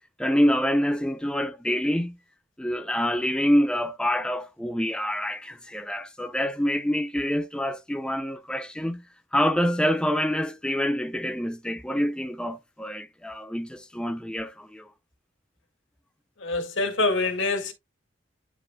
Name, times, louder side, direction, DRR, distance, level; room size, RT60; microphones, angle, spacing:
voice 1, 0.2-2.2 2.6-9.0 9.3-14.9, equal, 5° left, 0.5 m, -26 dB
voice 2, 16.4-17.7, left 3 dB, 80° left, 1.9 m, -25 dB
9.7 x 4.9 x 2.2 m
head